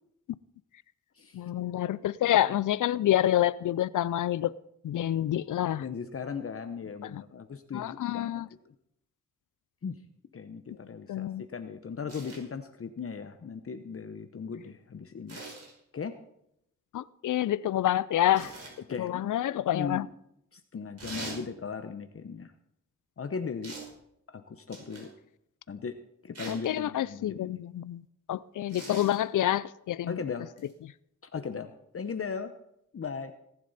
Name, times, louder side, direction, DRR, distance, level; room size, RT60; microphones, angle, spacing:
voice 1, 1.3-4.5 4.8-5.9 7.0-7.2 7.7-8.5 11.1-11.4 16.9-18.5 19.0-20.1 26.5-28.0 28.3-30.2 30.8-30.9, left 12 dB, 85° left, 19 dB, 0.5 m, -28 dB
voice 2, 5.8-8.4 9.8-10.0 10.3-15.4 15.9-16.2 18.9-19.2 19.7-20.0 20.5-22.5 23.2-23.7 24.3-25.1 25.7-26.0 26.2-27.5 30.1-30.5 31.3-32.5 32.9-33.3, left 6 dB, 50° left, 8 dB, 0.9 m, -37 dB
sound 1, 12.1-12.4 15.3-15.7 18.3-18.8 21.0-21.4 23.6-23.9 24.7-25.1 26.4-26.7 28.7-29.2 30.6-30.7, right 2 dB, 55° right, 5.3 m, -42 dB
18.5 x 11.0 x 4.1 m, 0.77 s
wide cardioid pair, 85°, 30 cm